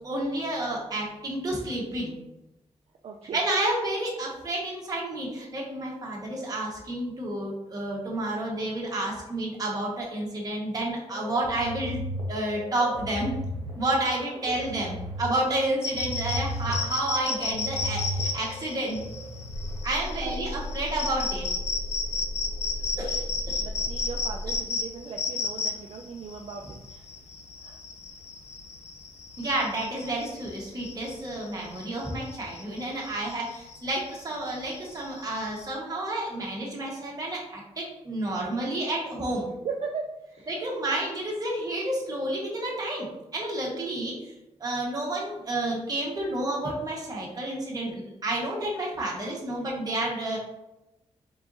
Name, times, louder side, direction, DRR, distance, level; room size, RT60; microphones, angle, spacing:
voice 1, 0.0-2.1 3.3-12.0 12.3-13.4 13.8-19.0 19.8-21.5 23.0-23.6 29.4-39.5 40.5-44.3 44.6-50.4, right 1 dB, 30° right, -4 dB, 1.3 m, -30 dB
voice 2, 3.0-3.4 14.5-14.8 20.1-20.3 23.6-27.1 27.6-27.8 39.6-40.5, right 5 dB, 55° right, 1 dB, 0.4 m, -38 dB
sound 1, 11.1-19.7, equal, 40° left, 1.2 m, -36 dB
sound 2, 15.8-35.7, left 4 dB, 65° left, 0.6 m, -34 dB
sound 3, 19.5-24.6, left 1 dB, 20° left, 0.6 m, -35 dB
4.6 x 3.8 x 2.6 m, 0.95 s
wide cardioid pair, 130°, 12 cm